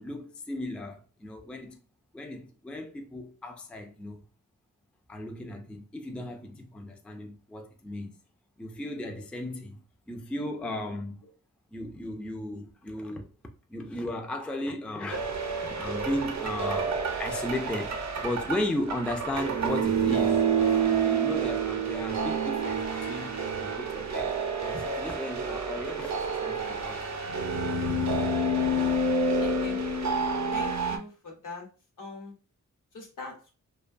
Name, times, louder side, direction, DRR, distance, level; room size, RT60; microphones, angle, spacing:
voice 1, 0.0-1.8 2.1-4.2 5.1-8.1 8.6-9.8 10.1-11.2 11.7-13.3 13.7-15.3 15.8-24.3 24.6-27.2, left 1 dB, 5° left, 0.3 m, -36 dB
sound 1, 15.1-31.0, right 3 dB, 60° right, 0.5 m, -28 dB
voice 2, 29.4-29.8 30.5-31.7 32.0-32.3 32.9-33.5, left 2 dB, 70° left, 0.9 m, -41 dB
2.5 x 2.2 x 2.4 m
cardioid pair, 65°, 32 cm